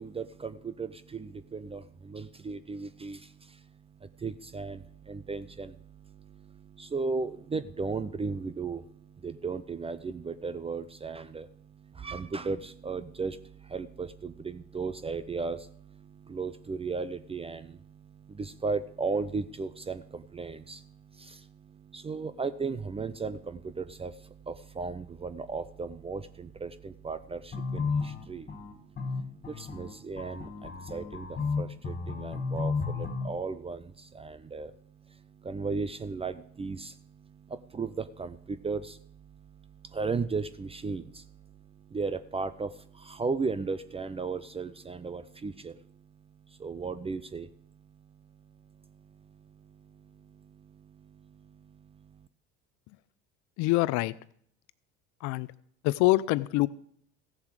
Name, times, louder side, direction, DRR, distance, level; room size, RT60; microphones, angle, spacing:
voice 1, 0.0-52.3, right 4 dB, 15° right, 13 dB, 0.5 m, -37 dB
sound 1, 27.5-33.3, left 4 dB, 30° left, 2.2 m, -33 dB
voice 2, 53.6-54.1 55.2-55.5 55.8-56.7, left 19 dB, 60° left, 18 dB, 0.6 m, -25 dB
15.5 x 7.1 x 4.9 m, 0.65 s
hypercardioid pair, 75°, 33 cm